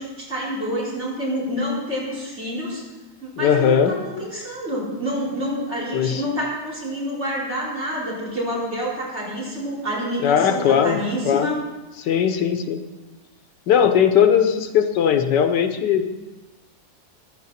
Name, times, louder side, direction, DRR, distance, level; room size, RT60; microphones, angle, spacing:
voice 1, 0.0-2.8 3.2-11.6, equal, 40° right, -6 dB, 5.0 m, -28 dB
voice 2, 3.4-4.0 5.9-6.2 10.2-11.0 11.2-11.5 12.0-12.8 13.7-16.1, left 8 dB, 85° left, 7 dB, 1.5 m, -18 dB
15.5 x 11.5 x 4.2 m, 1.1 s
omnidirectional pair, 1.8 m